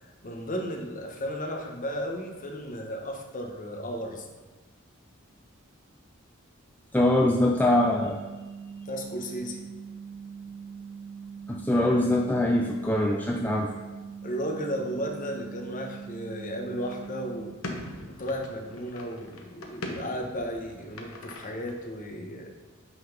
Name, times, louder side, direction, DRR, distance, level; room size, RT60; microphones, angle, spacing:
voice 1, 0.2-4.3 8.9-9.6 14.2-17.5 18.2-22.5, equal, 40° left, 2 dB, 1.0 m, -34 dB
voice 2, 6.9-8.2 11.5-13.7, left 1 dB, 10° left, 0 dB, 0.4 m, -23 dB
sound 1, 7.5-17.5, right 6 dB, 35° right, 0.8 m, -42 dB
sound 2, 16.8-22.0, left 1 dB, 80° left, 1.0 m, -42 dB
8.4 x 3.9 x 5.1 m, 1.2 s
head